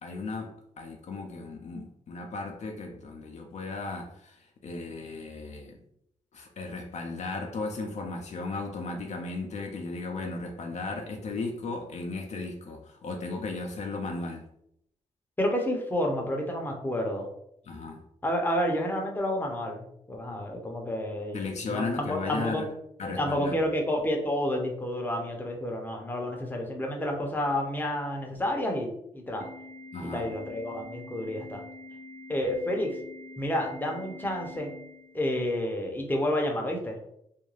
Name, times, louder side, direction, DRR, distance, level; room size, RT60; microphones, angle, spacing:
voice 1, 0.0-5.8 6.3-14.5 17.7-18.0 21.3-22.7 23.0-23.6 29.9-30.3, left 3 dB, 55° left, 2 dB, 0.5 m, -35 dB
voice 2, 15.4-17.3 18.2-22.6 23.0-29.5 30.0-31.6 32.3-33.0 33.4-34.7 35.1-37.0, left 1 dB, 15° left, 1 dB, 0.7 m, -30 dB
Organ, 29.4-35.4, left 2 dB, 55° right, 0.9 m, -46 dB
2.4 x 2.2 x 3.1 m, 0.75 s
cardioid pair, 65°, 14 cm